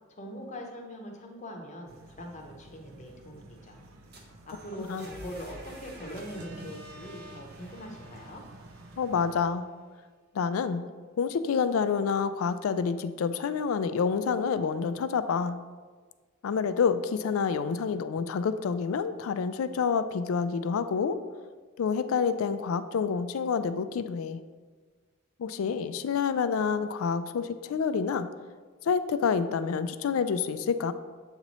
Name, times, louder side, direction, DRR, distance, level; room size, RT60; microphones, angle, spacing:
voice 1, 0.2-3.8 4.5-8.4, equal, 35° left, 1 dB, 0.8 m, -42 dB
sound 1, 1.9-9.4, right 2 dB, 70° right, 0.5 m, -50 dB
sound 2, 3.9-9.7, right 1 dB, 50° right, 0.9 m, -50 dB
voice 2, 9.0-9.7 10.3-10.8 11.2-15.6 16.4-21.2 21.8-24.4 25.4-28.3 28.8-30.9, left 6 dB, 75° left, 12 dB, 0.3 m, -28 dB
7.7 x 3.0 x 4.1 m, 1.5 s
head